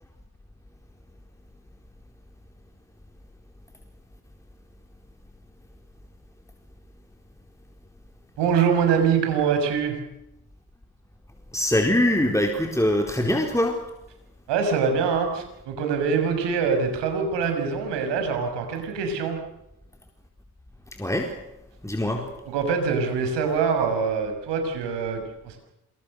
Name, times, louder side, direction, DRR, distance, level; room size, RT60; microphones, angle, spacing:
voice 1, 8.4-10.0 14.5-19.4 22.1-25.6, right 6 dB, 75° right, 5 dB, 6.7 m, -24 dB
voice 2, 11.5-13.8 20.9-21.3 21.8-22.2, left 1 dB, 5° left, 3 dB, 4.5 m, -23 dB
27.5 x 24.0 x 6.7 m, 0.88 s
hypercardioid pair, 45°, 42 cm